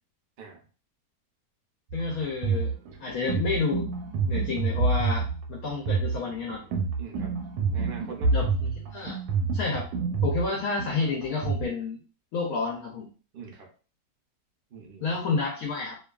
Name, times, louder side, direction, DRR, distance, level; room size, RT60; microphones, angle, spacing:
voice 1, 1.9-2.7 3.0-3.9 4.3-6.6 8.3-9.2 9.5-9.9 10.2-12.0 12.3-13.1 15.0-16.0, left 4 dB, 70° left, -1 dB, 0.9 m, -30 dB
sound 1, 1.9-11.7, right 4 dB, 85° right, 1.3 m, -28 dB
voice 2, 7.0-7.3 7.7-8.4 13.3-13.7 14.7-15.2, right 5 dB, 65° right, 0 dB, 0.5 m, -42 dB
2.8 x 2.3 x 2.3 m, 0.36 s
omnidirectional pair, 1.8 m